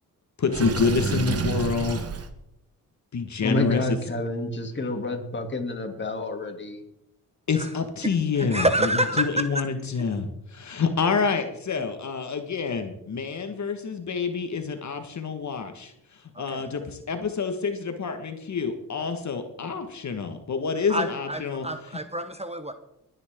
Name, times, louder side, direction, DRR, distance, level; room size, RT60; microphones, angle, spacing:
voice 1, 0.4-2.0 3.1-3.8 7.5-8.9 9.2-21.7, left 5 dB, 50° left, 7 dB, 1.6 m, -27 dB
Water / Sink (filling or washing), 0.5-2.3, right 5 dB, 40° right, 1.3 m, -28 dB
voice 2, 3.4-6.8, left 2 dB, 30° left, 4 dB, 2.7 m, -29 dB
voice 3, 8.4-9.4 16.3-16.6 20.9-22.7, right 1 dB, 15° right, 9 dB, 1.0 m, -27 dB
21.0 x 9.7 x 3.7 m, 0.83 s
cardioid pair, 70°, 37 cm